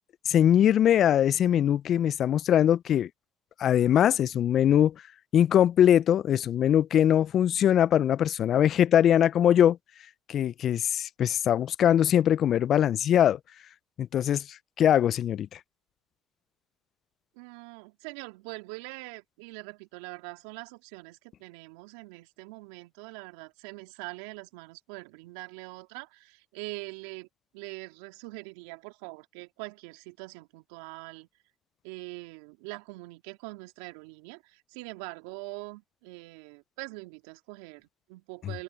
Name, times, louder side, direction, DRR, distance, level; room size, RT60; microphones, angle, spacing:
voice 1, 0.3-3.1 3.6-5.0 5.3-9.8 10.3-13.4 14.0-15.6 38.4-38.5, left 10 dB, 55° left, 0.6 m, -22 dB
voice 2, 17.4-27.3 27.5-31.3 31.8-38.6, right 26 dB, 75° right, 2.7 m, -43 dB
hypercardioid pair, 60°, 0 cm